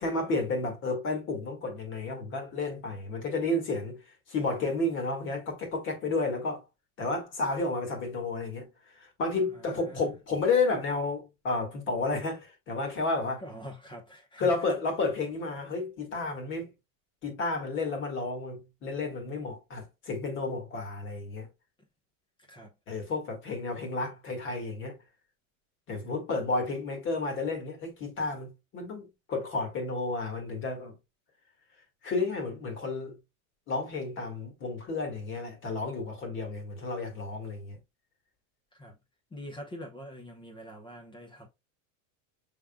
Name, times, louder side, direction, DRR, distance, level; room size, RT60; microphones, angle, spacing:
voice 1, 0.0-4.0 4.3-6.6 7.0-8.7 8.9-13.4 14.4-16.7 17.2-21.5 22.9-25.0 25.9-30.9 32.0-33.1 33.7-37.8, left 3 dB, 30° left, 1.6 m, -31 dB
voice 2, 9.5-10.1 13.4-14.7 22.5-22.7 38.7-39.0 39.3-41.5, equal, 10° left, 0.8 m, -44 dB
6.2 x 3.7 x 2.2 m
supercardioid pair, 160°, 41 cm